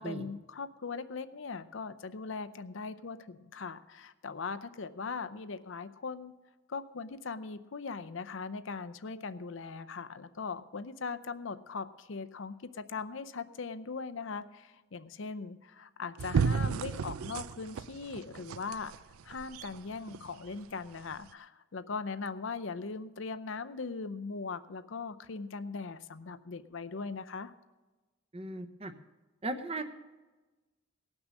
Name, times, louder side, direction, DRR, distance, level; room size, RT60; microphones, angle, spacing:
voice 1, 0.0-6.3 6.7-18.9 19.2-27.5, left 4 dB, 65° left, 12 dB, 0.6 m, -40 dB
sound 1, 16.2-20.3 21.1-21.2, right 5 dB, 90° right, 0.4 m, -32 dB
voice 2, 28.3-28.9 29.4-29.8, right 2 dB, 30° right, 8 dB, 0.8 m, -37 dB
18.0 x 6.2 x 6.3 m, 1.2 s
head